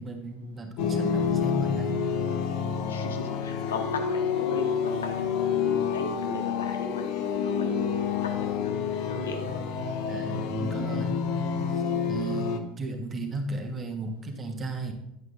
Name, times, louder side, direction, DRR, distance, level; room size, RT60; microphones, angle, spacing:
voice 1, 0.0-2.0 10.1-11.3 12.1-14.9, right 2 dB, 30° right, 4 dB, 1.4 m, -34 dB
sound 1, 0.8-12.6, left 6 dB, 60° left, 0.8 m, -28 dB
voice 2, 2.8-7.8 8.2-9.6, left 3 dB, 75° left, 4 dB, 1.1 m, -37 dB
9.7 x 8.0 x 2.6 m, 0.88 s
figure-of-eight pair, 75°, 0 cm